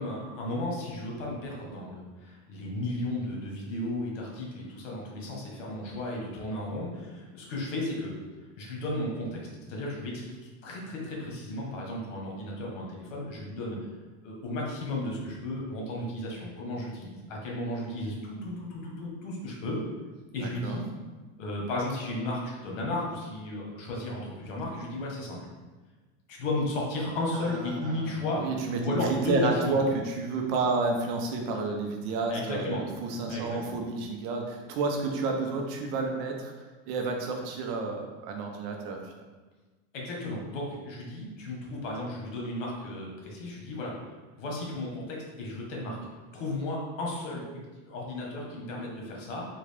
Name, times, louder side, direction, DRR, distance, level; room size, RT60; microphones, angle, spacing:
voice 1, 0.0-8.1 8.6-9.4 9.7-13.8 14.2-19.8 20.3-20.9 21.4-25.4 26.3-28.4 28.8-29.8 32.3-32.8 33.3-33.8 39.9-43.9 44.4-46.0 46.3-47.4 47.8-49.5, left 1 dB, 90° left, -2 dB, 1.2 m, -34 dB
voice 2, 20.4-20.8 27.3-39.1, right 3 dB, 55° right, 2 dB, 0.7 m, -30 dB
3.7 x 2.4 x 3.3 m, 1.3 s
supercardioid pair, 145°, 37 cm